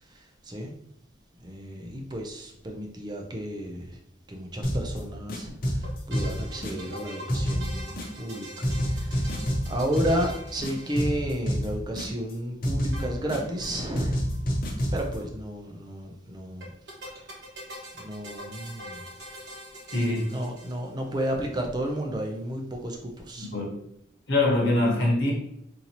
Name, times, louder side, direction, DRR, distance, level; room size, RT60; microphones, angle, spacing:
voice 1, 0.0-0.8 1.4-4.0 4.3-9.3 9.7-14.2 14.9-16.7 17.1-17.4 17.9-19.0 20.3-23.5, equal, 20° right, 0.4 m, -32 dB
sound 1, 4.6-5.0 5.3-7.0 7.3-8.3 8.6-10.3 10.6-12.3 12.6-13.7 13.9-15.2, equal, 50° left, 0.7 m, -29 dB
sound 2, 5.8-11.6 12.9-13.8 14.0-14.1 14.3-14.4 16.6-21.1, equal, 65° right, 1.0 m, -43 dB
voice 2, 19.9-20.3 23.4-23.7 24.3-25.3, left 2 dB, 75° left, 1.1 m, -23 dB
4.0 x 2.7 x 2.9 m
head